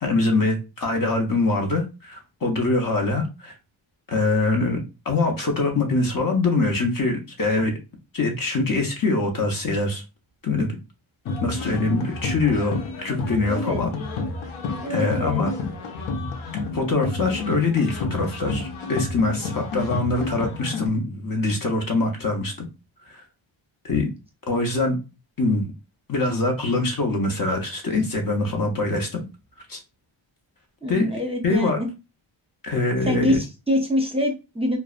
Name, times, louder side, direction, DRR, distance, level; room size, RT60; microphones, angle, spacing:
voice 1, 0.0-3.5 4.1-4.8 5.1-7.7 8.1-10.0 10.4-10.7 11.4-14.0 14.9-15.5 16.7-22.7 23.1-23.2 23.8-24.1 24.5-25.0 25.4-25.7 26.1-29.2 29.7-29.8 30.9-31.1 31.4-31.8 32.6-33.4, left 3 dB, 45° left, 3 dB, 0.7 m, -23 dB
sound 1, 11.3-20.9, left 3 dB, 80° left, 0.6 m, -30 dB
voice 2, 13.5-13.8 14.8-15.4 30.8-31.9 33.0-34.8, left 1 dB, 10° right, 1 dB, 0.6 m, -25 dB
2.6 x 2.0 x 2.4 m, 0.28 s
wide cardioid pair, 90°, 48 cm